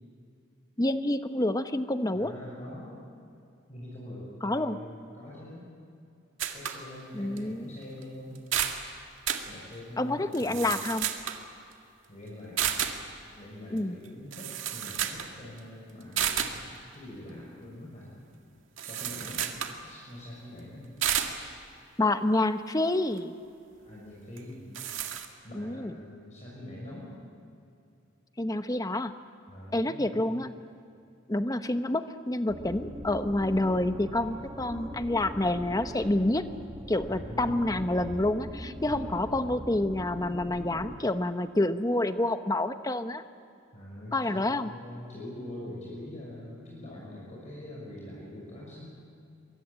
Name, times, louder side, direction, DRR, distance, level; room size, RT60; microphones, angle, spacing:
voice 1, 0.8-2.3 4.4-4.8 7.1-7.7 10.0-11.1 13.7-14.0 22.0-23.3 25.6-25.9 28.4-29.1 29.7-30.5 31.3-36.4 36.9-43.2 44.1-44.7, left 1 dB, 20° left, 9 dB, 0.9 m, -28 dB
voice 2, 2.1-3.1 3.7-5.6 6.5-8.4 9.5-10.8 12.1-12.7 13.4-16.5 16.9-18.1 18.8-19.5 19.8-20.9 23.8-24.6 25.4-27.1 29.5-30.2 37.0-37.7 38.8-39.4 43.7-48.9, left 1 dB, 35° left, -5 dB, 6.3 m, -44 dB
sound 1, 6.4-6.8 7.4-7.5 8.0-8.1 8.4-8.8 9.3-9.5 10.3-11.4 12.6-13.0 14.1-14.2 14.3-15.3 15.6-15.7 16.2-16.6 18.8-19.8 21.0-21.4 24.4-24.5 24.7-25.3, right 9 dB, 80° right, 2.0 m, -31 dB
sound 2, 32.5-41.0, equal, 20° right, 1.7 m, -42 dB
23.5 x 23.0 x 8.7 m, 2.5 s
head